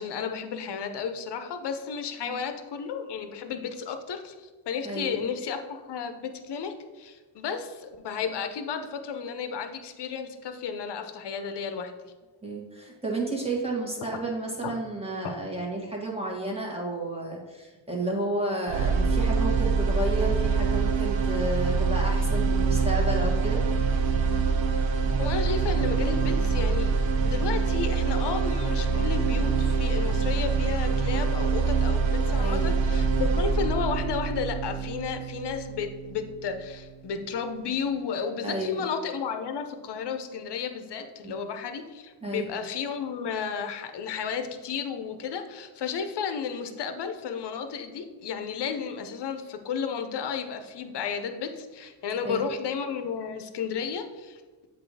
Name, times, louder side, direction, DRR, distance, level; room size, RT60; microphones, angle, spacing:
voice 1, 0.0-12.1 14.6-14.7 15.2-15.3 25.2-26.9 27.2-54.7, left 6 dB, 60° left, 7 dB, 0.8 m, -33 dB
voice 2, 4.8-5.3 12.4-23.6 32.3-32.8 38.4-38.8 41.2-41.3 42.2-42.4 52.2-52.5, right 2 dB, 10° right, -2 dB, 1.6 m, -32 dB
sound 1, 18.7-36.7, right 4 dB, 70° right, 0.7 m, -25 dB
7.5 x 2.8 x 4.8 m, 1.3 s
cardioid pair, 80°, 47 cm